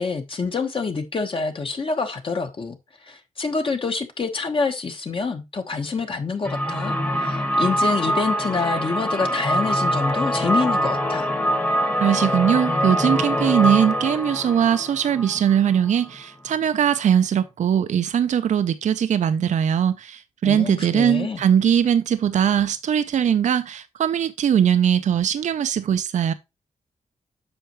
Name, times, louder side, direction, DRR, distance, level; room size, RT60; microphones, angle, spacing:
voice 1, 0.0-2.8 3.0-11.3 20.4-21.4, left 4 dB, 40° left, 1.2 m, -26 dB
sound 1, 6.4-16.1, equal, 15° left, 1.2 m, -24 dB
voice 2, 12.0-26.3, right 9 dB, 65° right, 0.5 m, -20 dB
7.9 x 5.8 x 3.0 m
wide cardioid pair, 105°, 13 cm